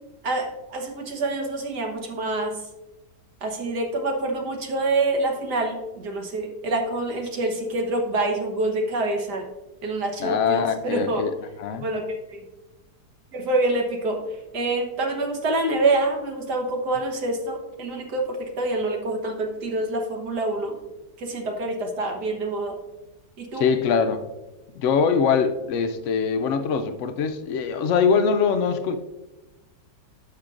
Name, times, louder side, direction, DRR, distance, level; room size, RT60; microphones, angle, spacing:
voice 1, 0.2-2.7 3.4-9.5 9.8-11.3 11.8-12.5 13.3-20.8 21.2-22.8 23.4-23.7, right 2 dB, 70° right, 3 dB, 1.7 m, -26 dB
voice 2, 10.2-11.3 11.6-11.8 23.6-24.2 24.8-29.0, left 6 dB, 85° left, 8 dB, 0.6 m, -22 dB
12.0 x 6.6 x 2.5 m, 1.1 s
omnidirectional pair, 1.9 m